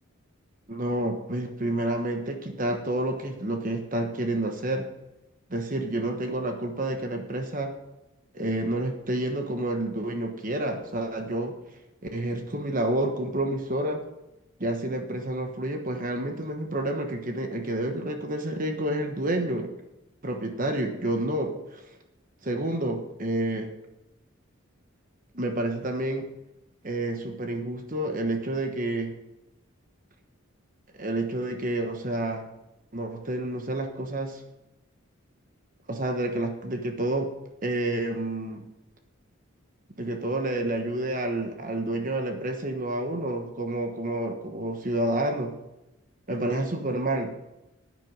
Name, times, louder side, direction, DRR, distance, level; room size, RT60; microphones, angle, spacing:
voice 1, 0.7-4.9 5.5-7.7 8.3-11.6 12.1-14.0 14.6-19.7 20.2-21.8 22.4-23.7 25.3-26.2 26.8-29.1 31.0-32.5 32.9-34.4 35.9-37.3 37.6-38.6 40.0-45.5 46.3-47.3, right 1 dB, 40° right, 4 dB, 1.2 m, -29 dB
11.0 x 9.5 x 5.5 m, 0.94 s
head